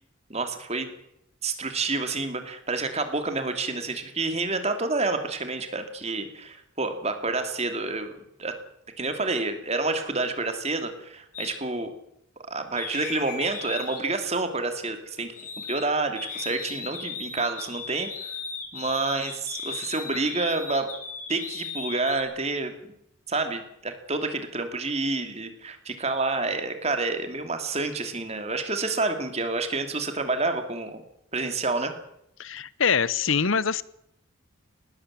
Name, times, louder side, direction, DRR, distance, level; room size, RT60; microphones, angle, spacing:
voice 1, 0.3-0.9 1.4-8.5 9.0-11.9 12.5-15.3 15.6-18.4 18.7-20.9 21.3-22.9 23.3-31.0 31.3-31.9, right 3 dB, 30° right, 7 dB, 2.8 m, -29 dB
sound 1, 11.3-11.6 12.8-15.9 16.2-22.2, left 5 dB, 35° left, 3.8 m, -37 dB
voice 2, 32.4-33.8, left 6 dB, 70° left, 19 dB, 0.9 m, -24 dB
19.0 x 19.0 x 7.5 m, 0.77 s
head